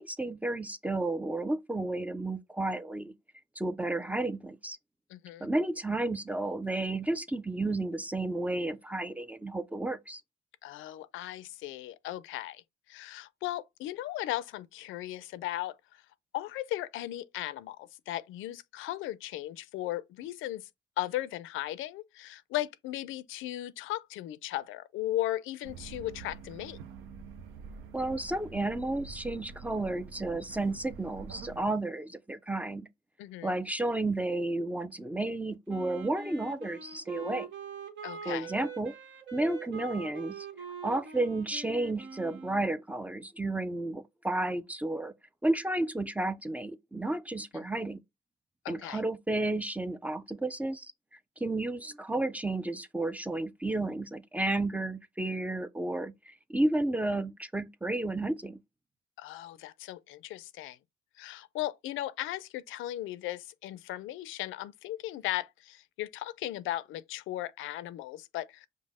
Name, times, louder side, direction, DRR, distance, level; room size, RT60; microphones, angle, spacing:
voice 1, 0.0-3.1 3.6-4.8 5.4-10.2 27.9-32.9 33.4-37.5 38.3-39.0 39.3-40.5 40.8-45.1 45.4-48.0 48.7-58.6, right 2 dB, 5° right, 0.4 m, -32 dB
voice 2, 5.1-5.5 10.6-12.6 12.9-16.0 16.3-20.7 21.0-26.8 33.2-33.6 38.0-38.5 48.6-49.0 59.2-60.8 61.2-68.7, left 14 dB, 85° left, 0.4 m, -37 dB
sound 1, 25.6-31.6, right 6 dB, 90° right, 0.6 m, -46 dB
Wind instrument woodwind instrument, 35.7-42.8, right 5 dB, 65° right, 1.1 m, -43 dB
5.3 x 2.0 x 3.5 m
cardioid pair, 90°, 20 cm